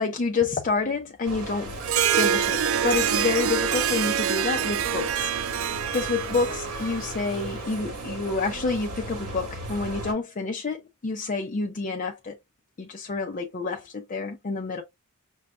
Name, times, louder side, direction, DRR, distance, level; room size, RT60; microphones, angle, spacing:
voice 1, 0.0-1.7 2.1-5.3 5.7-12.4 12.8-14.8, left 4 dB, 35° left, 0.4 m, -28 dB
sound 1, 1.2-10.1, right 1 dB, 85° right, 1.7 m, -36 dB
Harp, 1.8-7.5, right 9 dB, 60° right, 0.4 m, -26 dB
6.2 x 2.2 x 2.3 m
head